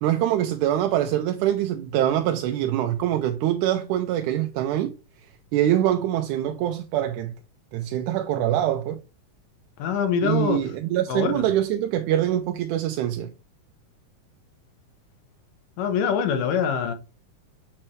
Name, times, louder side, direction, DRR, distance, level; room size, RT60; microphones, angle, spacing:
voice 1, 0.0-4.9 5.5-7.4 7.7-9.0 10.2-13.3, right 12 dB, 80° right, 1.9 m, -24 dB
voice 2, 9.8-10.6 11.1-11.4 15.8-16.9, left 7 dB, 80° left, 2.7 m, -24 dB
7.0 x 4.3 x 3.1 m
omnidirectional pair, 3.8 m